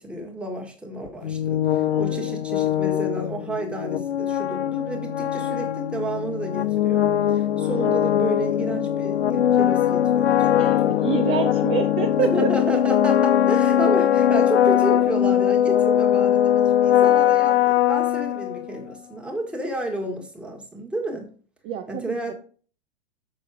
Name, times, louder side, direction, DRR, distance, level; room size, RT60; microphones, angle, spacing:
voice 1, 0.0-11.2 12.1-21.3 21.9-22.3, right 1 dB, 5° right, 1 dB, 1.6 m, -31 dB
sound 1, 1.2-18.9, left 10 dB, 85° left, 0.8 m, -21 dB
voice 2, 1.9-2.4 10.6-10.8 11.0-12.5 21.6-22.3, right 9 dB, 25° right, 6 dB, 0.6 m, -27 dB
6.6 x 6.4 x 4.8 m, 0.41 s
hypercardioid pair, 145°, 32 cm